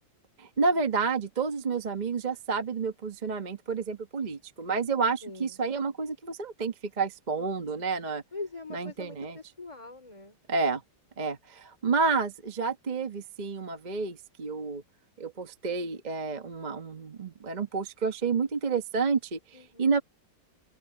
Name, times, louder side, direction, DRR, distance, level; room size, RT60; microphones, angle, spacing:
voice 1, 0.4-8.2 8.7-9.3 10.5-10.8 11.2-14.8 15.2-19.4 19.8-20.0, right 4 dB, 30° right, 1.1 m, -30 dB
voice 2, 5.2-5.6 8.3-10.4 19.5-20.0, left 3 dB, 15° left, 4.1 m, -42 dB
open air
omnidirectional pair, 2.0 m